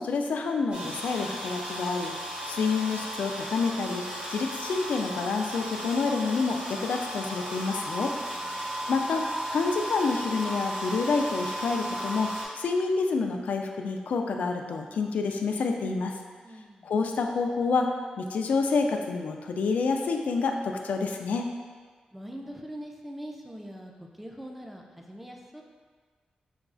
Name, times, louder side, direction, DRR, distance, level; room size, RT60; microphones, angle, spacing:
voice 1, 0.0-2.1 2.5-8.1 8.9-16.1 16.8-21.5, left 4 dB, 80° left, 3 dB, 0.3 m, -28 dB
sound 1, 0.7-12.4, equal, 65° right, 1.1 m, -35 dB
voice 2, 8.3-8.7 16.4-16.9 22.1-25.6, equal, 5° right, 1 dB, 0.3 m, -42 dB
5.8 x 2.3 x 2.4 m, 1.5 s
wide cardioid pair, 145°, 3 cm